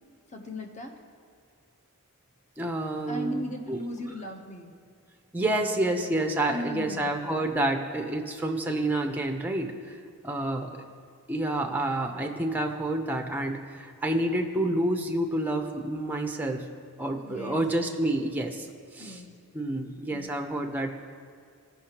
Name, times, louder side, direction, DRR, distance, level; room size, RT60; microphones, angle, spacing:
voice 1, 0.0-0.9 3.1-4.7 6.5-7.5 17.2-17.6 19.0-19.3 20.1-20.3, left 1 dB, 30° left, 3 dB, 0.8 m, -37 dB
voice 2, 2.6-3.4 3.7-3.8 5.3-10.0 10.2-10.8 11.3-16.6 17.0-18.7 18.9-19.2 19.5-20.9, right 1 dB, 10° right, 3 dB, 0.6 m, -29 dB
15.5 x 5.8 x 2.9 m, 2.2 s
head